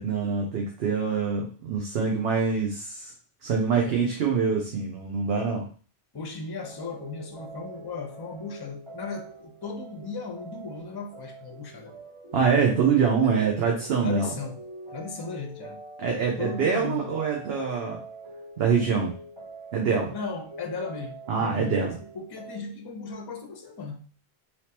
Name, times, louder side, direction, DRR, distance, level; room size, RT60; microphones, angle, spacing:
voice 1, 0.0-3.1 3.4-5.7 12.3-14.3 16.0-18.0 18.6-19.1 19.7-20.1 21.3-22.0, right 6 dB, 70° right, 0 dB, 0.9 m, -25 dB
voice 2, 3.7-4.0 6.1-11.9 13.2-13.4 14.0-14.6 14.9-15.8 16.4-17.2 20.1-24.0, left 4 dB, 30° left, 2 dB, 0.5 m, -36 dB
sound 1, 6.6-22.6, right 2 dB, 30° right, 1.0 m, -45 dB
3.4 x 2.8 x 2.8 m, 0.39 s
omnidirectional pair, 1.1 m